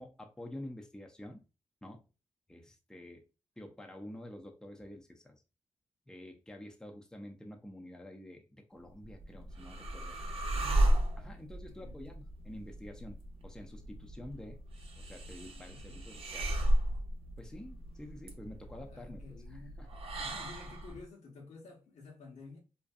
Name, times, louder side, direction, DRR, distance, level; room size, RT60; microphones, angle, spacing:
voice 1, 0.0-1.4 1.8-2.0 2.5-3.2 3.6-5.4 6.1-10.2 11.2-14.6 15.0-16.5 17.4-19.2 19.5-19.9, left 1 dB, 5° left, 0.5 m, -48 dB
sound 1, 8.9-21.0, right 1 dB, 50° right, 0.7 m, -35 dB
voice 2, 10.5-11.1 11.7-12.0 15.5-16.1 18.9-19.8 20.2-22.6, left 4 dB, 75° left, 0.9 m, -52 dB
2.5 x 2.2 x 2.5 m
cardioid pair, 60°, 12 cm